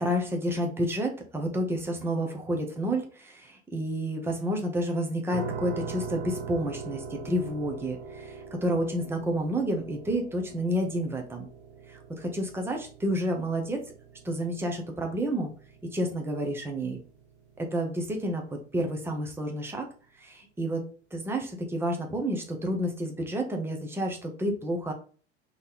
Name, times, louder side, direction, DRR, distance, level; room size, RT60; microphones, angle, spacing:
voice 1, 0.0-11.5 11.9-13.8 14.2-15.5 15.9-17.0 17.6-18.4 18.7-19.9 20.2-20.8 21.1-24.9, equal, 5° right, 2 dB, 1.0 m, -30 dB
sound 1, 5.3-18.2, right 5 dB, 70° right, 1.0 m, -42 dB
4.0 x 3.3 x 3.8 m, 0.40 s
hypercardioid pair, 85°, 35 cm